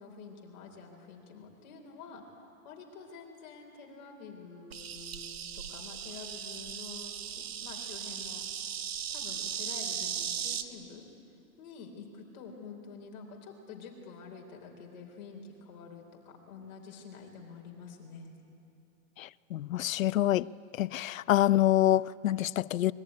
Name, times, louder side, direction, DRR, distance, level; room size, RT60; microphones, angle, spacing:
voice 1, 0.0-8.4 9.1-11.0 11.6-18.4, left 5 dB, 30° left, 3.6 m, -48 dB
Insect, 4.7-10.6, right 9 dB, 45° right, 1.4 m, -37 dB
voice 2, 19.2-20.5 20.8-22.9, left 13 dB, 70° left, 0.6 m, -26 dB
25.5 x 22.0 x 9.6 m
hypercardioid pair, 175°, 42 cm